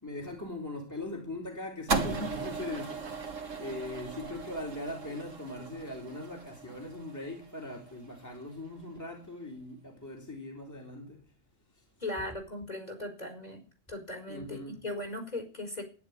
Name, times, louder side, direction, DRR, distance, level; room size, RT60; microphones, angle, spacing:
voice 1, 0.0-11.2 11.7-11.8 14.3-14.8, left 1 dB, 15° left, 3.2 m, -40 dB
sound 1, 1.9-8.2, right 4 dB, 75° right, 2.2 m, -37 dB
voice 2, 12.0-13.6 13.9-15.8, left 1 dB, 30° left, 4.6 m, -38 dB
12.0 x 10.5 x 9.3 m
omnidirectional pair, 1.3 m